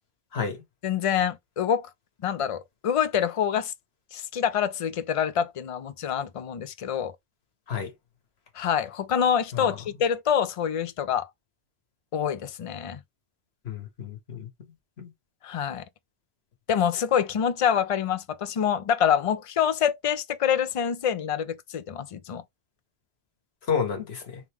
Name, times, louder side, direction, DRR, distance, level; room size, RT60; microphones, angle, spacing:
voice 1, 0.8-1.9 2.2-3.7 4.1-7.1 8.6-11.3 12.1-13.0 15.4-15.8 16.7-22.4, left 8 dB, 50° left, 0.4 m, -26 dB
voice 2, 13.6-14.5 15.0-15.1 23.7-24.4, left 6 dB, 90° left, 1.4 m, -30 dB
3.7 x 3.0 x 3.4 m
omnidirectional pair, 1.0 m